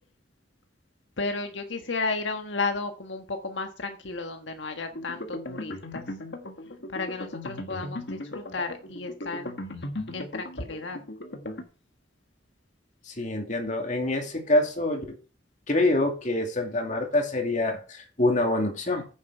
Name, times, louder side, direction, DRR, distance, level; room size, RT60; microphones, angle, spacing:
voice 1, 1.2-6.0 6.9-9.5 10.1-11.0, left 3 dB, 85° left, 1.4 m, -33 dB
sound 1, 4.9-11.6, left 1 dB, 65° left, 1.7 m, -37 dB
voice 2, 13.1-15.2 15.7-19.0, left 1 dB, 40° left, 2.4 m, -26 dB
9.5 x 7.5 x 4.7 m
head